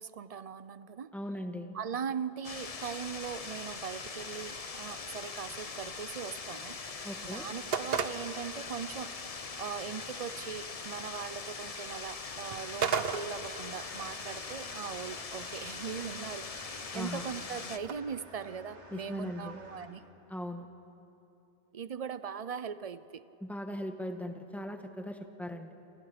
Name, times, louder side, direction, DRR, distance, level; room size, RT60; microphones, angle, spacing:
voice 1, 0.0-1.1 1.7-6.8 7.2-9.1 9.6-20.0 21.7-23.3, right 7 dB, 45° right, 15 dB, 0.5 m, -40 dB
voice 2, 1.1-1.8 7.0-7.5 16.9-17.2 18.9-19.6 20.3-20.7 23.4-25.7, equal, ahead, 5 dB, 1.3 m, -39 dB
sound 1, 2.4-17.8, left 4 dB, 35° left, 0.8 m, -42 dB
sound 2, 4.2-17.9, right 6 dB, 60° right, 1.0 m, -41 dB
sound 3, 12.2-19.9, right 1 dB, 80° right, 3.3 m, -53 dB
28.0 x 27.5 x 5.1 m, 2.9 s
omnidirectional pair, 1.2 m